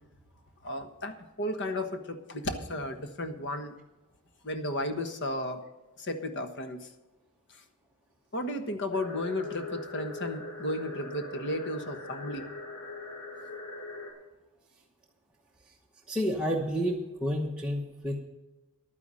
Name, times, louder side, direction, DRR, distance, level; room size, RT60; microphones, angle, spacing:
voice 1, 0.6-3.7 4.4-5.6 6.0-6.9 8.3-12.5, left 1 dB, 55° left, 7 dB, 1.3 m, -34 dB
sound 1, 8.9-14.1, left 2 dB, 90° left, 4.7 m, -41 dB
voice 2, 16.1-18.2, equal, 5° right, -3 dB, 1.0 m, -30 dB
11.5 x 9.6 x 6.3 m, 1.1 s
head